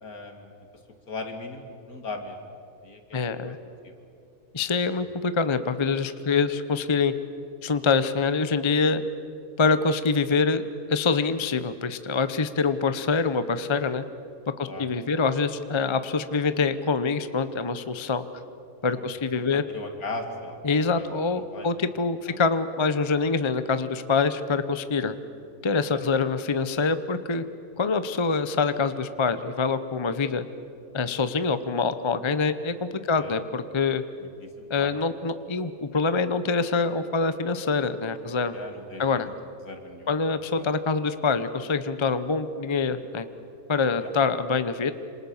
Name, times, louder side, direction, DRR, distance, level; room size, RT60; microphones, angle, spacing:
voice 1, 0.0-0.5 1.1-2.4 2.8-3.5 3.8-3.9 4.9-5.1 6.3-6.4 14.6-14.9 15.1-15.3 18.9-19.1 19.4-20.6 20.9-21.0 21.3-21.7 22.3-22.4 25.9-26.0 33.1-33.3 34.2-34.5 34.8-34.9 38.5-39.3 39.6-40.1 40.6-40.7 44.0-44.1, left 2 dB, 70° left, 5 dB, 2.8 m, -38 dB
voice 2, 3.1-3.6 4.5-7.1 7.6-9.0 9.6-14.0 14.6-18.2 18.8-19.6 20.6-25.1 25.6-27.4 27.8-30.4 30.9-32.7 33.1-34.0 34.7-38.5 39.0-39.3 40.1-43.3 43.7-44.9, left 4 dB, 25° left, 11 dB, 0.7 m, -25 dB
27.5 x 26.5 x 7.3 m, 2.6 s
omnidirectional pair, 1.6 m